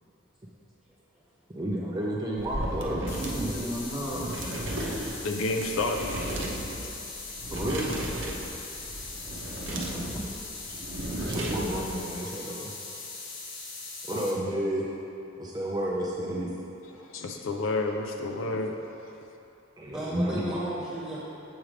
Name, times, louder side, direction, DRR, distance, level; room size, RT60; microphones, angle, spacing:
voice 1, 1.5-3.8 7.5-7.9 10.7-10.8 11.2-12.7 14.1-14.9 15.4-16.5 17.0-17.1 18.5-18.6 19.8-20.6, right 1 dB, 20° right, -4 dB, 0.5 m, -31 dB
sound 1, 2.4-12.0, right 1 dB, 65° right, 0.7 m, -35 dB
sound 2, 3.1-14.3, left 3 dB, 65° left, 0.8 m, -40 dB
voice 2, 3.4-4.3 9.4-9.6 9.9-10.2 10.5-10.7 12.1-12.2 19.9-21.2, equal, 5° right, -10 dB, 1.5 m, -35 dB
voice 3, 5.2-6.2 17.1-18.8, left 2 dB, 85° left, 3 dB, 0.5 m, -29 dB
7.2 x 3.2 x 5.0 m, 2.9 s
head